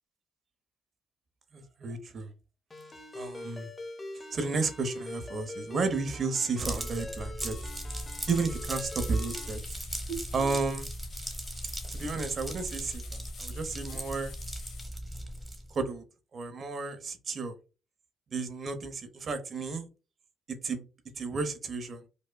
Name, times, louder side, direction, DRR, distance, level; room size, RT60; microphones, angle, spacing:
voice 1, 1.5-2.3 3.1-3.7 4.3-7.6 8.3-9.6 10.1-10.9 11.9-14.3 15.7-16.0 16.3-17.5 18.3-19.9 20.5-20.8 21.2-22.0, right 4 dB, 50° right, 0.8 m, -32 dB
Ringtone, 2.7-9.6, left 1 dB, 25° left, 0.6 m, -44 dB
sound 1, 6.6-15.8, right 1 dB, 10° right, 1.0 m, -38 dB
sound 2, 7.5-14.9, left 7 dB, 90° left, 0.9 m, -50 dB
5.0 x 2.1 x 2.2 m
cardioid pair, 90°, 0 cm